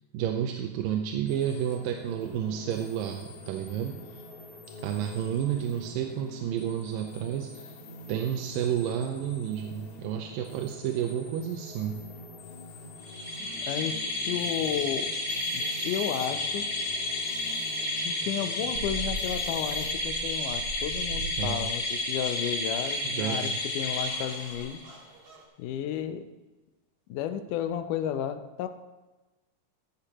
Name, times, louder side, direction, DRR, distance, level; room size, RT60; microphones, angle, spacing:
voice 1, 0.1-4.2 4.8-7.8 8.1-12.1 21.4-21.7 23.0-23.6, right 9 dB, 85° right, 4 dB, 2.3 m, -31 dB
sound 1, 1.3-19.9, left 1 dB, 60° left, 2.4 m, -46 dB
sound 2, 13.0-24.9, left 2 dB, 25° left, 2.4 m, -31 dB
voice 2, 13.4-15.1 15.5-16.7 18.0-24.8 25.6-26.3 27.1-28.7, left 10 dB, 75° left, 9 dB, 2.0 m, -33 dB
sound 3, 18.7-25.4, right 3 dB, 50° right, 2.2 m, -41 dB
14.5 x 11.5 x 3.0 m, 1.2 s
omnidirectional pair, 4.1 m